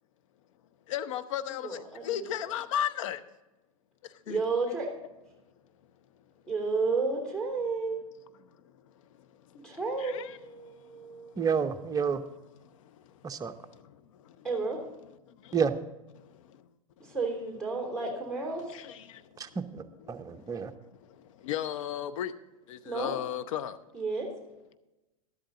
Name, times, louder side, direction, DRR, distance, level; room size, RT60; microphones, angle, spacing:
voice 1, 0.9-3.2 4.3-4.4 10.0-10.4 18.7-19.0 21.4-22.3 22.7-23.8, left 10 dB, 60° left, 0.8 m, -34 dB
voice 2, 1.6-2.5 4.3-4.9 6.5-8.0 9.6-11.5 14.4-14.8 17.1-18.6 22.8-23.1 23.9-24.3, right 4 dB, 5° left, 3.1 m, -32 dB
voice 3, 11.4-12.2 13.2-13.5 15.5-15.8 19.4-19.8 20.1-20.7, right 6 dB, 20° right, 0.8 m, -29 dB
12.5 x 11.5 x 3.9 m
hypercardioid pair, 95°, 19 cm